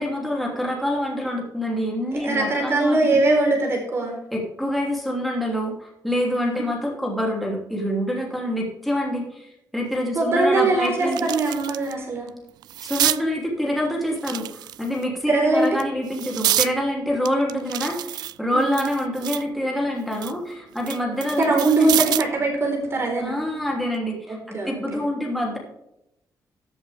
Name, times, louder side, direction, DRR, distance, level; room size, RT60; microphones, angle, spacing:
voice 1, 0.0-3.2 4.3-11.3 12.8-22.1 23.2-25.6, equal, ahead, -2 dB, 2.9 m, -26 dB
voice 2, 2.1-4.2 6.4-6.6 10.1-12.3 15.3-15.7 18.5-18.8 21.4-23.4 24.3-24.8, right 2 dB, 40° right, 1 dB, 4.1 m, -21 dB
sound 1, 9.9-10.0 10.5-11.9 12.3-13.2 14.1-15.0 15.6-16.7 17.2-19.5 19.9-22.4 23.7-23.9, right 13 dB, 85° right, 0.3 m, -28 dB
14.5 x 7.9 x 3.4 m, 0.82 s
wide cardioid pair, 160°, 7 cm